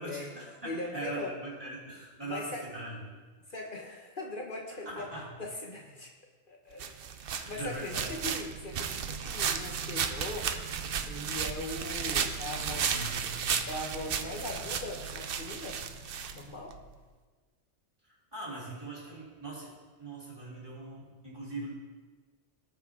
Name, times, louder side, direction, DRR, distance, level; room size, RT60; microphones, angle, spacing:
voice 1, 0.0-3.1 4.9-5.2 7.3-8.1 12.6-13.4 18.1-19.7 20.0-21.7, right 1 dB, 20° right, -6 dB, 3.3 m, -41 dB
voice 2, 0.6-1.3 2.2-2.6 3.5-5.1 5.4-6.1 6.5-10.5 11.0-13.0 13.7-15.8 16.3-16.8, left 2 dB, 45° left, 1 dB, 1.0 m, -40 dB
sound 1, 6.8-16.8, right 7 dB, 55° right, 0.7 m, -34 dB
17.5 x 5.9 x 3.6 m, 1.4 s
omnidirectional pair, 1.3 m